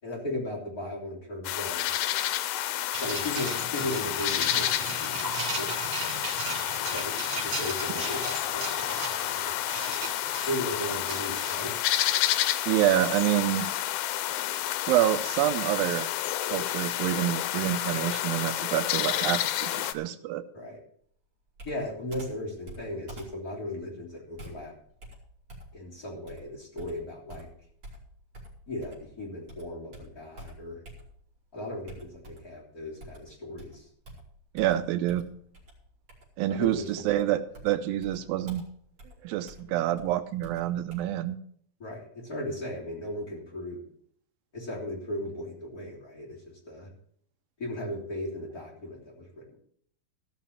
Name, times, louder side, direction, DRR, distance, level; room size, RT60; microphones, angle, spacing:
voice 1, 0.0-1.9 3.0-5.3 5.6-5.8 6.9-9.6 10.5-11.8 20.5-20.8 21.7-24.7 25.7-27.5 28.7-30.8 31.5-33.9 36.5-37.2 41.8-43.8 44.5-46.9 47.6-49.6, left 1 dB, 25° left, -4 dB, 3.7 m, -37 dB
sound 1, 1.4-19.9, left 13 dB, 90° left, 2.5 m, -30 dB
sound 2, 2.9-12.5, right 3 dB, 50° right, 4.3 m, -37 dB
voice 2, 12.7-13.7 14.9-16.1 16.5-19.4 19.7-20.5 34.5-35.2 36.4-38.6 39.2-41.4, right 13 dB, 85° right, 11 dB, 2.4 m, -27 dB
Computer keyboard, 21.6-29.2 29.5-31.4 31.9-32.6 33.0-41.0, right 1 dB, 30° right, 3.6 m, -48 dB
15.0 x 5.9 x 7.1 m, 0.62 s
omnidirectional pair, 4.1 m